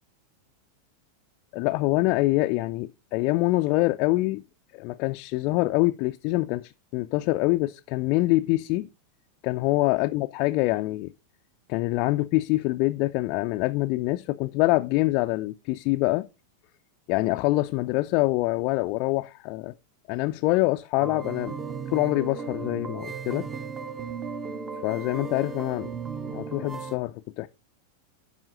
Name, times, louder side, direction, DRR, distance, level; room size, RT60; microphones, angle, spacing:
voice 1, 1.5-4.4 4.7-8.9 9.4-11.1 11.7-16.3 17.1-19.7 20.1-21.5 21.9-23.5 24.8-25.9 26.2-27.5, left 20 dB, 45° left, 0.3 m, -25 dB
sound 1, 21.0-27.0, right 5 dB, 20° right, 0.7 m, -36 dB
13.0 x 5.5 x 2.5 m
figure-of-eight pair, 90°, 0 cm